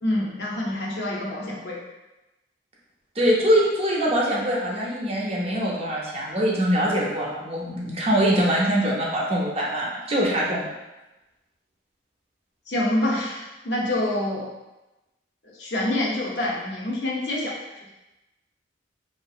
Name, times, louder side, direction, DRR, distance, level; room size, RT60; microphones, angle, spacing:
voice 1, 0.0-1.8 12.7-14.5 15.6-17.6, left 1 dB, 65° left, -3 dB, 0.6 m, -26 dB
voice 2, 3.2-10.7, equal, 35° right, -4 dB, 0.6 m, -23 dB
2.9 x 2.5 x 2.4 m, 1.0 s
head